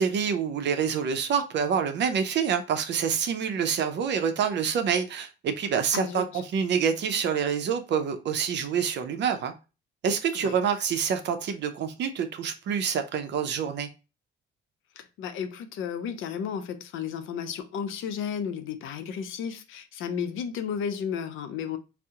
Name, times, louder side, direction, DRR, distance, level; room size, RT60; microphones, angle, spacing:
voice 1, 0.0-9.5 10.0-13.9, right 7 dB, 65° right, 0.5 m, -27 dB
voice 2, 5.9-6.4 10.3-10.6 15.0-21.8, left 7 dB, 80° left, 0.5 m, -33 dB
2.7 x 2.0 x 3.5 m
cardioid pair, 90°, 20 cm